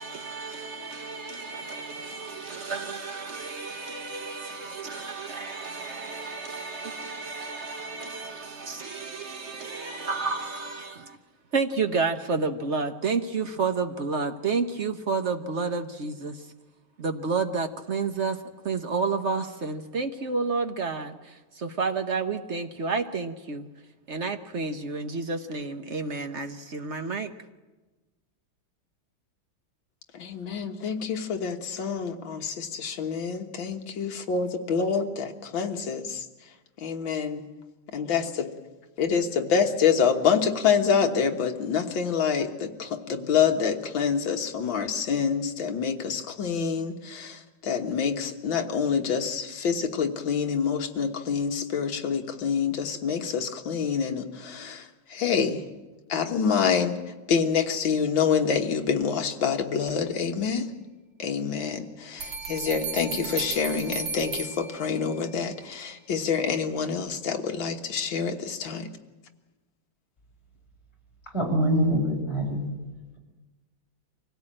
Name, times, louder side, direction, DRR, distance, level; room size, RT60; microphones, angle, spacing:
voice 1, 0.0-11.2 11.5-16.5 17.0-23.7 24.1-27.3, right 4 dB, 50° right, 0.9 m, -30 dB
voice 2, 30.1-37.4 37.9-38.5 39.0-55.7 56.1-60.7 61.2-68.9, left 6 dB, 65° left, 2.2 m, -27 dB
sound 1, 62.2-65.3, right 5 dB, 70° right, 2.0 m, -35 dB
voice 3, 71.3-72.7, equal, 30° left, 5.9 m, -24 dB
24.5 x 16.5 x 8.8 m
omnidirectional pair, 2.3 m